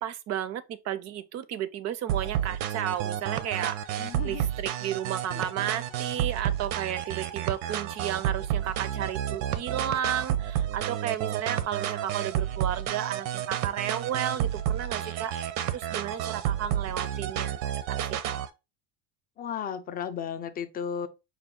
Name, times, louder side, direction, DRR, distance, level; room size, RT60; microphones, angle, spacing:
voice 1, 0.0-15.3 15.7-18.5, right 10 dB, 40° right, 0.4 m, -33 dB
sound 1, 2.1-18.5, right 11 dB, 80° right, 0.6 m, -30 dB
voice 2, 4.0-4.4 5.3-5.7 19.4-21.1, left 8 dB, 25° left, 0.3 m, -35 dB
4.8 x 2.2 x 3.6 m
cardioid pair, 140°, 40 cm